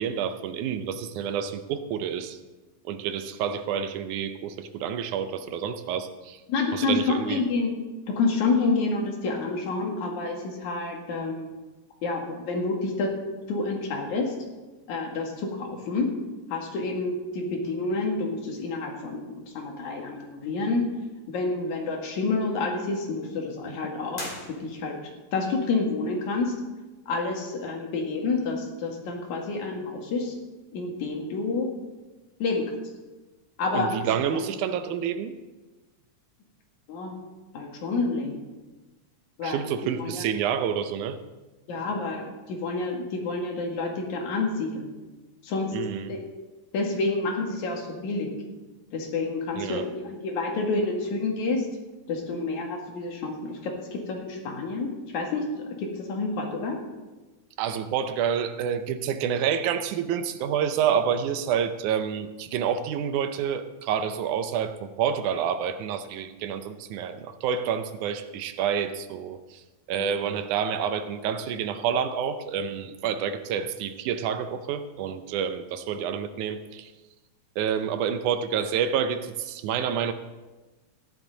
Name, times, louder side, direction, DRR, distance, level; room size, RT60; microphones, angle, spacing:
voice 1, 0.0-2.4 2.9-6.4 6.7-7.4 33.7-35.3 39.4-41.2 45.7-46.1 49.6-49.8 57.6-69.6 69.9-76.9 77.6-80.1, right 8 dB, 90° right, 10 dB, 2.2 m, -28 dB
voice 2, 6.5-7.7 8.2-11.5 12.0-13.1 13.5-14.3 14.9-16.1 16.5-20.8 21.3-24.2 24.6-25.0 25.3-26.5 27.1-30.3 30.7-31.7 32.4-32.6 33.6-34.4 36.9-37.2 37.5-38.4 39.4-39.6 40.0-40.2 41.7-44.9 45.4-45.7 46.1-46.2 46.7-48.3 48.9-51.7 52.1-56.8 70.0-70.2, left 3 dB, 75° left, 1 dB, 3.2 m, -28 dB
sound 1, 24.1-25.2, left 1 dB, 35° left, 1.9 m, -39 dB
14.5 x 10.5 x 4.0 m, 1.2 s
omnidirectional pair, 3.4 m